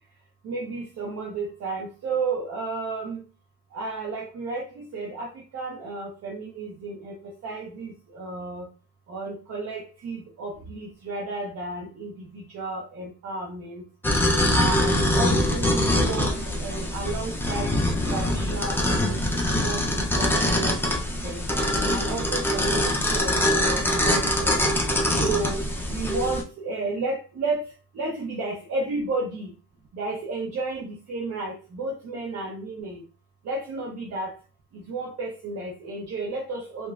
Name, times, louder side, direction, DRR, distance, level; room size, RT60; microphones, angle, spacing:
voice 1, 0.4-3.2 3.7-8.7 9.1-13.8 14.5-19.8 20.1-20.8 21.2-21.4 21.9-24.6 25.2-27.6 27.9-29.5 29.9-33.0 33.4-34.3 34.7-36.9, right 3 dB, 45° right, -1 dB, 0.7 m, -32 dB
sound 1, 14.0-26.4, left 1 dB, 5° left, 0.5 m, -24 dB
2.9 x 2.3 x 2.3 m, 0.35 s
cardioid pair, 105°, 35 cm